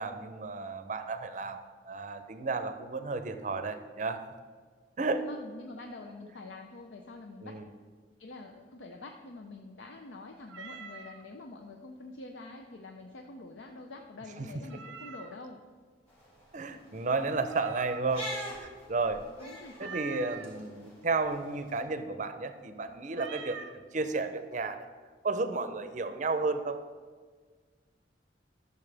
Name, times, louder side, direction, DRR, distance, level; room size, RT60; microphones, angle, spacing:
voice 1, 0.0-1.6 1.9-4.2 5.0-5.3 7.4-7.7 14.4-14.5 16.5-18.3 18.6-19.2 19.8-23.6 23.9-24.9 25.2-26.8, right 3 dB, 40° right, 9 dB, 0.6 m, -32 dB
voice 2, 5.3-7.6 8.2-15.6 19.4-20.5, left 2 dB, 75° left, 3 dB, 0.6 m, -46 dB
Meow, 10.5-11.2 14.7-15.5 17.5-18.3 19.8-20.5 23.1-23.8, right 5 dB, 90° right, 0.6 m, -44 dB
sound 1, 16.1-21.8, equal, 30° left, 2.5 m, -45 dB
12.5 x 6.9 x 3.4 m, 1.6 s
head